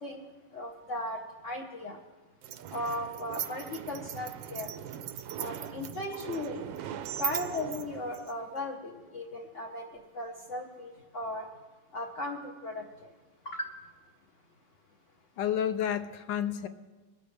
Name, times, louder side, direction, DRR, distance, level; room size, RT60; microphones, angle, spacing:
voice 1, 0.5-2.0 2.7-4.7 5.4-6.6 7.2-9.9 10.1-11.5 11.9-12.8 13.4-13.7, left 1 dB, 40° left, -1 dB, 1.3 m, -37 dB
sound 1, 2.4-8.6, right 9 dB, 75° right, 1.3 m, -39 dB
voice 2, 15.4-16.7, left 9 dB, 70° left, 11 dB, 1.2 m, -30 dB
22.0 x 13.5 x 3.3 m, 1.3 s
omnidirectional pair, 2.3 m